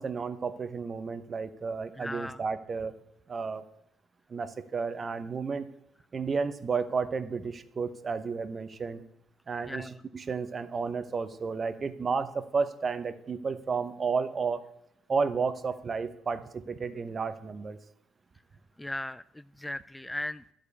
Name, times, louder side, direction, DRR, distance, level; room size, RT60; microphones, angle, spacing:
voice 1, 0.0-2.9 3.3-3.6 4.3-5.7 6.1-9.0 9.5-14.7 15.1-17.8, right 5 dB, 40° right, 13 dB, 0.8 m, -32 dB
voice 2, 2.0-2.4 9.7-10.0 18.8-20.4, left 1 dB, 10° left, 16 dB, 0.3 m, -37 dB
11.0 x 5.1 x 8.2 m, 0.78 s
supercardioid pair, 60°, 0 cm